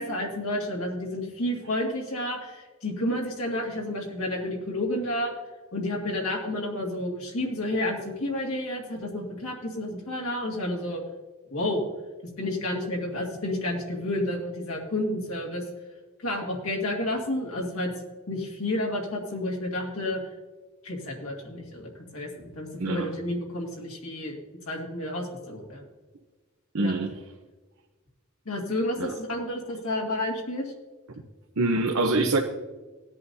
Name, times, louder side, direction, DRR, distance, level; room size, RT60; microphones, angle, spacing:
voice 1, 0.0-5.3 5.7-11.0 11.5-11.8 12.4-15.6 16.2-17.9 18.3-20.2 20.8-24.4 24.7-25.9 26.8-27.2 28.5-30.7, left 1 dB, 75° left, -2 dB, 2.1 m, -30 dB
voice 2, 26.7-27.1 29.0-29.1 31.6-32.4, right 2 dB, 80° right, 3 dB, 0.8 m, -24 dB
18.0 x 10.5 x 2.7 m, 1.3 s
head